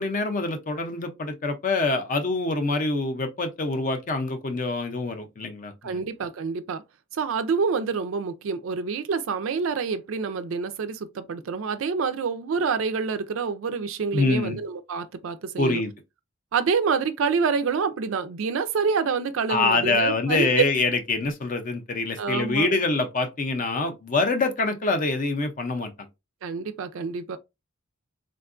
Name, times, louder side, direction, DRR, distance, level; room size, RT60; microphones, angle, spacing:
voice 1, 0.0-6.0 14.1-14.6 15.6-15.9 19.5-25.9, left 3 dB, 40° left, 0.5 m, -25 dB
voice 2, 5.8-6.8 7.1-15.8 16.5-20.5 22.2-22.7 26.4-27.4, right 5 dB, 65° right, 0.4 m, -27 dB
3.5 x 2.2 x 2.4 m
head